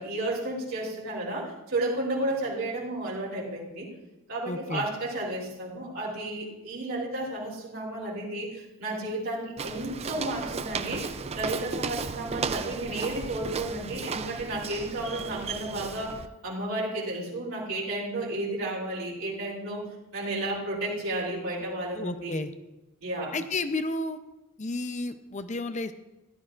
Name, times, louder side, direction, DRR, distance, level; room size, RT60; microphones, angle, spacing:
voice 1, 0.0-3.9 4.3-22.4 23.0-23.4, right 1 dB, 70° right, -6 dB, 3.3 m, -32 dB
voice 2, 4.5-4.8 21.9-22.5 23.3-24.2 24.6-25.9, left 2 dB, 35° left, 10 dB, 0.6 m, -32 dB
Walk footsteps, 9.6-16.3, right 5 dB, 30° right, 0.4 m, -35 dB
16.0 x 12.0 x 2.5 m, 1.0 s
head